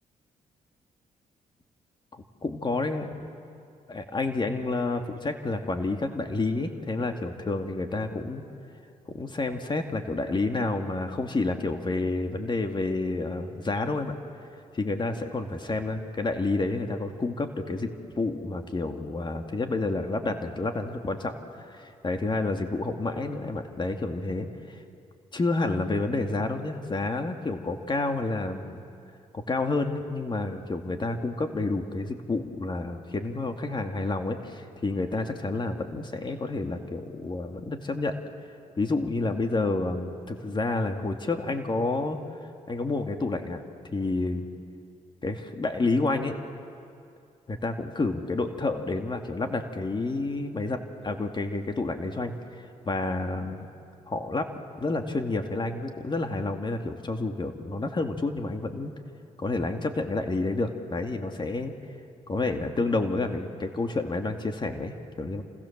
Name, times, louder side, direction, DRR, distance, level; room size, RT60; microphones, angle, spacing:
voice 1, 2.1-3.3 3.9-8.4 9.1-14.2 14.7-24.8 25.3-28.8 29.3-38.1 38.8-42.2 42.7-43.6 43.9-44.5 45.2-46.3 47.5-53.7 54.1-54.5 54.8-58.9 59.4-61.7 62.3-65.4, left 2 dB, 35° left, 5 dB, 2.3 m, -29 dB
29.0 x 27.5 x 7.4 m, 2.4 s
cardioid pair, 75°, 14 cm